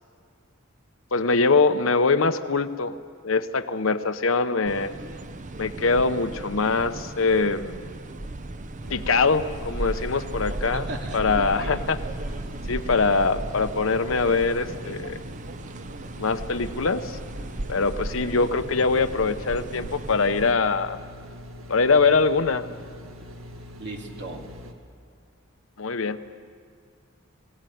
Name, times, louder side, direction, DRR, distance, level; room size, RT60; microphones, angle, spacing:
voice 1, 1.1-3.0 3.2-4.9 5.6-7.8 8.9-10.9 11.1-12.0 12.7-15.2 16.2-17.2 17.7-21.0 21.7-22.7 25.8-26.2, left 4 dB, 70° left, 10 dB, 0.9 m, -23 dB
sound 1, 4.6-20.5, right 2 dB, 40° right, 0.7 m, -36 dB
sound 2, 8.8-24.7, left 1 dB, 80° right, 1.8 m, -43 dB
voice 2, 10.7-11.9 23.8-24.4, right 2 dB, 60° right, 1 dB, 2.7 m, -36 dB
21.5 x 17.5 x 9.3 m, 2.2 s
head